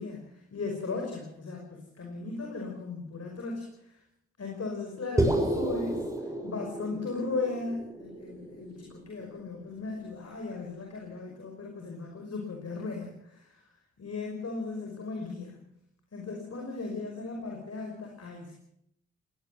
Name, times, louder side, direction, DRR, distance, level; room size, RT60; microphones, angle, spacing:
voice 1, 0.0-3.9 4.4-6.0 6.4-13.6 14.0-15.6 16.1-18.5, left 3 dB, 60° left, 1 dB, 5.5 m, -37 dB
sound 1, 5.2-9.6, right 1 dB, 10° right, 6.9 m, -31 dB
19.5 x 19.0 x 7.6 m, 0.77 s
supercardioid pair, 50°, 29 cm